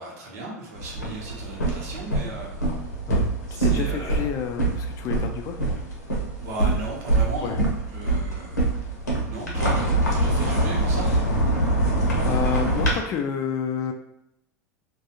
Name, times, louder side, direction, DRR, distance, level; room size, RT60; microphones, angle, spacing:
voice 1, 0.0-2.6 3.5-4.3 6.4-7.6 7.9-8.7 9.3-9.8 10.1-11.1, right 2 dB, 65° right, -2 dB, 0.9 m, -35 dB
sound 1, 0.7-12.9, right 2 dB, 90° left, 0.8 m, -24 dB
voice 2, 3.6-5.6 7.4-7.6 10.4-10.5 11.8-12.0 12.2-13.9, left 8 dB, 40° left, 5 dB, 0.4 m, -29 dB
2.4 x 2.2 x 2.9 m, 0.81 s
hypercardioid pair, 85°, 9 cm